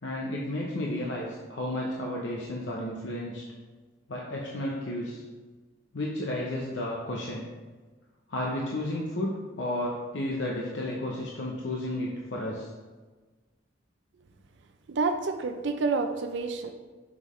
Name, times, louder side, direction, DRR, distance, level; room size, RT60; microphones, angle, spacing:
voice 1, 0.0-3.4 4.1-5.2 5.9-7.5 8.3-12.7, left 1 dB, 65° left, -3 dB, 0.7 m, -32 dB
voice 2, 14.9-16.7, right 4 dB, 65° right, 6 dB, 0.4 m, -28 dB
5.9 x 5.5 x 3.1 m, 1.3 s
head